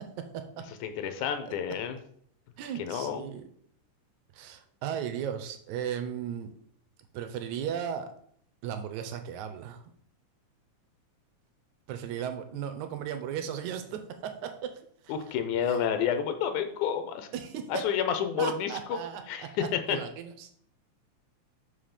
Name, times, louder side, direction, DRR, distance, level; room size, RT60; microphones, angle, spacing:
voice 1, 0.8-2.0 2.8-3.2 15.1-17.3 17.7-19.0 19.3-19.5 19.7-20.0, left 8 dB, 90° left, 8 dB, 2.2 m, -30 dB
voice 2, 2.6-3.4 4.3-6.5 7.1-8.1 8.6-9.8 11.9-14.5 15.0-15.1 15.7-15.8 17.3-17.8 18.4-20.6, right 9 dB, 80° right, 8 dB, 2.2 m, -36 dB
5.5 x 5.1 x 5.7 m, 0.63 s
omnidirectional pair, 3.4 m